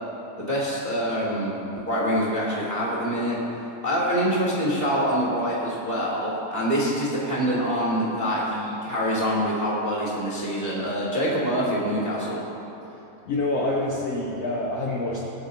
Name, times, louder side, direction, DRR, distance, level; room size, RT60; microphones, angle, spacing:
voice 1, 0.4-3.4 3.8-12.4, equal, 15° right, -6 dB, 1.4 m, -25 dB
voice 2, 13.3-15.2, left 2 dB, 75° left, -3 dB, 1.4 m, -27 dB
23.5 x 8.5 x 2.7 m, 3.0 s
omnidirectional pair, 4.3 m